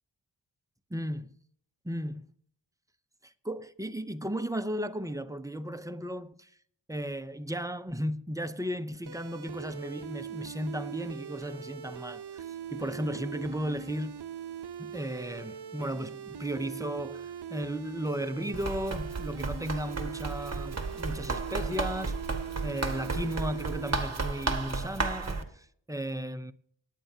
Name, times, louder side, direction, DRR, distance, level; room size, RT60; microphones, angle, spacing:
voice 1, 0.9-1.3 1.8-2.3 3.2-6.5 6.9-12.5 12.7-14.2 14.8-22.2 22.6-26.5, equal, 10° right, 0.5 m, -35 dB
sound 1, 9.1-24.0, right 9 dB, 55° right, 0.6 m, -41 dB
Run, 18.5-25.4, right 3 dB, 35° right, 1.4 m, -33 dB
18.0 x 9.1 x 2.8 m
wide cardioid pair, 80°, 47 cm